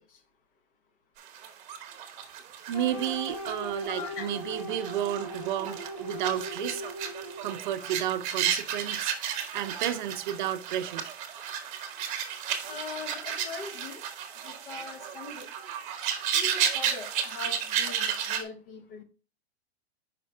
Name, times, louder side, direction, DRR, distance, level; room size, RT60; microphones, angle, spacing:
sound 1, 1.2-18.4, right 8 dB, 25° right, 0.9 m, -33 dB
sound 2, 2.7-7.7, equal, 30° left, 1.1 m, -39 dB
voice 1, 2.7-6.8 7.4-11.1, right 11 dB, 50° right, 0.5 m, -32 dB
voice 2, 3.9-4.3 12.7-14.0 14.4-15.5 16.2-19.0, left 5 dB, 55° left, 1.2 m, -41 dB
5.5 x 5.1 x 3.4 m
hypercardioid pair, 150°, 32 cm